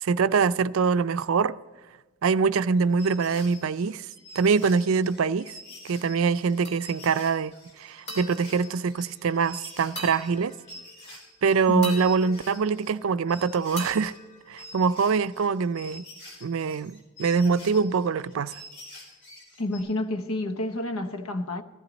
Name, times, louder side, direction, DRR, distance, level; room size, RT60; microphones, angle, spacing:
voice 1, 0.0-1.6 2.2-4.1 4.4-5.5 5.8-7.5 7.8-10.6 11.4-14.1 14.5-16.0 16.4-18.5, right 5 dB, 70° right, 0.4 m, -24 dB
sound 1, 2.7-13.0 13.3-19.8, left 1 dB, 60° left, 4.1 m, -47 dB
sound 2, 6.7-7.3 8.1-9.5 10.0-11.0 11.8-13.3 13.8-15.2, equal, 30° left, 3.1 m, -42 dB
voice 2, 19.6-21.6, left 1 dB, 90° left, 1.0 m, -29 dB
14.5 x 14.0 x 4.0 m
head